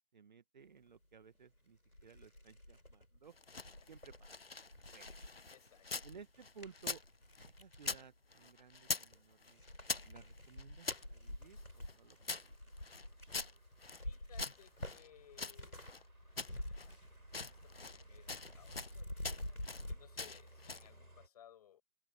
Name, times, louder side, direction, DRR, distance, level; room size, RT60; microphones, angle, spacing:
voice 1, 0.1-4.3 4.9-5.2 6.0-7.0 7.4-9.6 10.0-12.6, right 6 dB, 30° right, 1.8 m, -58 dB
sound 1, 1.4-1.5 1.9-8.0 8.6-9.2 9.5-16.0 16.2-17.6 17.9-20.0, left 1 dB, 90° left, 5.5 m, -49 dB
sound 2, 3.3-6.1 6.4-8.1 8.3-9.2 9.4-11.0 11.6-14.0 14.4-16.0 16.4-16.9 17.3-18.0 18.3-18.9 19.2-19.9 20.2-20.9, left 4 dB, 45° left, 0.4 m, -44 dB
voice 2, 5.5-6.1 14.0-15.8 16.5-17.0 17.4-19.6 19.9-21.8, left 10 dB, 25° left, 6.0 m, -63 dB
sound 3, 5.7-5.9 6.2-6.3 6.5-7.0 7.4-8.1 8.5-8.6 8.8-9.3 9.8-10.6 10.9-21.3, right 1 dB, 85° right, 7.0 m, -61 dB
figure-of-eight pair, 150°, 43 cm